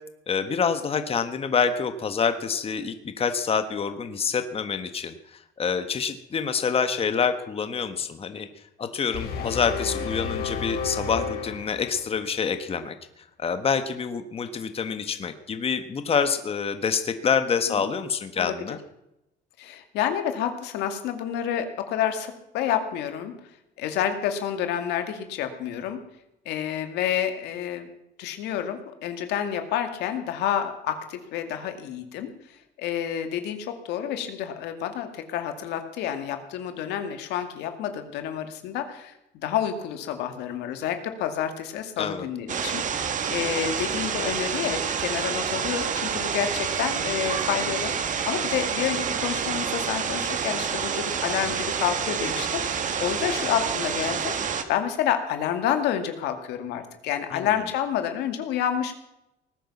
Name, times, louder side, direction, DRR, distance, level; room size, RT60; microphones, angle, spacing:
voice 1, 0.3-8.5 8.8-12.9 13.4-18.8 42.0-42.3 57.3-57.5, left 6 dB, 35° left, 9 dB, 1.5 m, -27 dB
sound 1, 9.1-12.3, left 5 dB, 65° left, 5.6 m, -32 dB
voice 2, 18.4-18.8 19.6-23.3 23.8-26.0 26.5-27.9 28.2-32.3 32.8-39.1 39.4-58.9, left 9 dB, 85° left, 7 dB, 2.3 m, -29 dB
sound 2, 42.5-54.6, right 7 dB, 50° right, 1.8 m, -28 dB
19.0 x 10.0 x 7.2 m, 0.86 s
cardioid pair, 110°, 17 cm